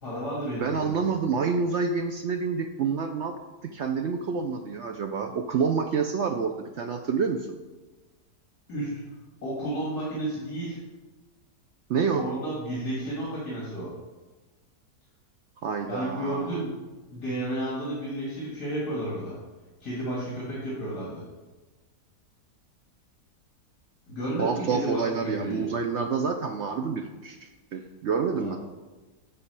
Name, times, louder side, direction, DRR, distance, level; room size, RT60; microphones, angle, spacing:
voice 1, 0.0-1.1 8.7-9.0 9.4-10.8 12.1-13.9 15.9-16.7 17.1-19.4 19.8-21.2 24.1-25.7 28.4-28.6, right 1 dB, 70° left, -6 dB, 2.7 m, -32 dB
voice 2, 0.6-3.3 3.6-7.6 11.9-12.2 15.6-16.6 24.4-28.6, right 5 dB, 80° right, 5 dB, 0.6 m, -28 dB
9.4 x 4.2 x 6.7 m, 1.2 s
omnidirectional pair, 1.8 m